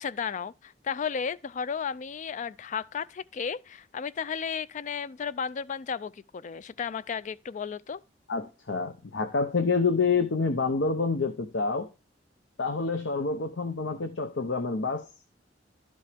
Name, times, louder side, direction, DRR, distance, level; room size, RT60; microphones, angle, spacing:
voice 1, 0.0-8.0, left 6 dB, 40° left, 0.4 m, -34 dB
voice 2, 8.3-11.9 12.6-15.1, left 4 dB, 70° left, 0.7 m, -27 dB
12.0 x 5.3 x 3.4 m
head